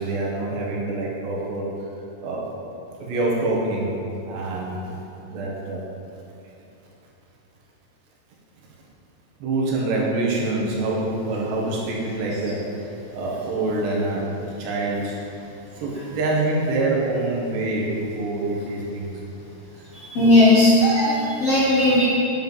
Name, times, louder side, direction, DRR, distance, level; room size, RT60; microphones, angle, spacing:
voice 1, 0.0-1.9 2.2-2.5 3.0-4.0 4.3-5.0 5.3-5.8 9.4-12.6 13.1-14.3 14.6-15.1 15.8-19.1 20.2-20.3, right 2 dB, 80° right, -4 dB, 3.8 m, -25 dB
voice 2, 19.9-22.0, left 1 dB, 60° left, -8 dB, 1.7 m, -17 dB
9.9 x 7.9 x 5.5 m, 2.9 s
omnidirectional pair, 4.9 m